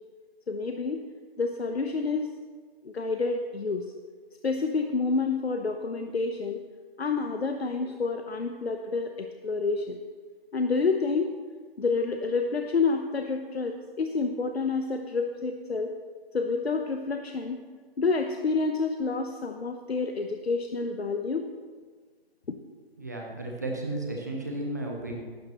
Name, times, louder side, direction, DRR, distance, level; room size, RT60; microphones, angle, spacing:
voice 1, 0.5-1.0 1.4-2.3 2.8-3.9 4.4-6.6 7.0-10.0 10.5-11.3 11.8-15.9 16.3-17.6 18.0-21.4, left 4 dB, 85° left, 5 dB, 1.0 m, -28 dB
voice 2, 23.0-25.2, right 1 dB, 15° right, 0 dB, 0.9 m, -33 dB
15.5 x 12.0 x 3.0 m, 1.5 s
figure-of-eight pair, 175°, 31 cm